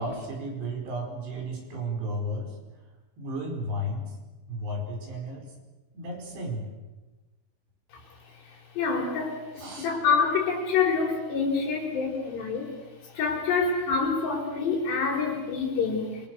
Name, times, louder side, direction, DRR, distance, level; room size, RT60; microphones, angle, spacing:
voice 1, 0.0-2.5 3.2-4.1 4.5-5.5 5.9-6.7 9.6-9.9, equal, 65° right, 1 dB, 7.1 m, -33 dB
voice 2, 8.7-9.4 9.8-12.7 13.1-16.1, left 5 dB, 65° left, 1 dB, 6.6 m, -26 dB
28.0 x 25.0 x 6.6 m, 1.2 s
omnidirectional pair, 5.3 m